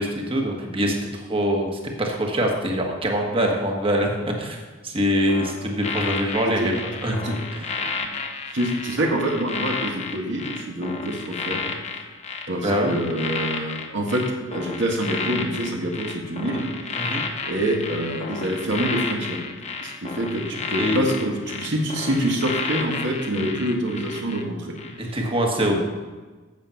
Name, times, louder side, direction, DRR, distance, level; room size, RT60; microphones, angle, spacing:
voice 1, 0.0-7.9 12.6-13.0 17.0-17.2 20.8-21.1 25.0-25.8, equal, 25° right, 1 dB, 1.5 m, -24 dB
sound 1, 5.3-24.4 24.8-25.0, left 5 dB, 35° left, 0.9 m, -32 dB
voice 2, 8.5-11.6 12.5-14.2 14.5-16.7 17.0-17.1 17.5-19.4 19.8-24.7 25.7-25.8, right 1 dB, 60° right, 0 dB, 1.6 m, -26 dB
8.8 x 7.1 x 5.7 m, 1.3 s
head